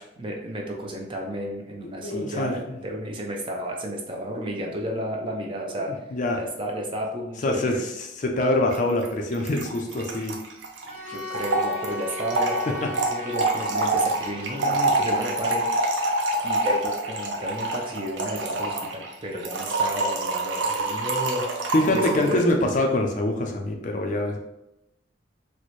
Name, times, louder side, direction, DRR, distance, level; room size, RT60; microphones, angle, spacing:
voice 1, 0.2-5.9 6.3-7.9 11.1-12.6 13.1-16.0 16.4-22.4, equal, 25° right, 0 dB, 0.5 m, -32 dB
voice 2, 1.8-2.8 4.4-4.5 6.1-6.4 7.4-7.9 8.2-10.4 12.8-12.9 14.6-14.8 21.7-24.4, left 1 dB, 40° left, 3 dB, 0.4 m, -25 dB
Trickle dribble / Fill (with liquid), 8.7-8.8 9.0-9.1 9.3-22.4, right 2 dB, 75° right, 0.6 m, -26 dB
Bowed string instrument, 10.8-15.8, left 2 dB, 5° left, 0.8 m, -38 dB
4.1 x 2.1 x 3.1 m, 0.89 s
head